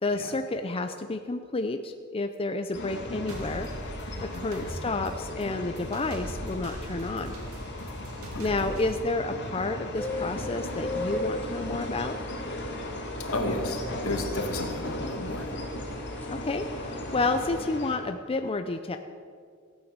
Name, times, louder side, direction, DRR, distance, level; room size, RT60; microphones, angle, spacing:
voice 1, 0.0-3.7 4.2-7.4 8.4-12.2 16.3-19.0, left 3 dB, 25° left, 7 dB, 0.5 m, -30 dB
sound 1, 2.7-18.0, left 1 dB, 55° left, 2.3 m, -37 dB
sound 2, 3.3-8.9, right 1 dB, 85° right, 1.7 m, -40 dB
voice 2, 4.1-4.5 8.3-8.6 13.3-15.5, left 2 dB, 80° left, 4 dB, 2.0 m, -33 dB
sound 3, 9.9-17.6, left 1 dB, 10° left, 2.2 m, -38 dB
15.5 x 9.0 x 6.6 m, 2.1 s
head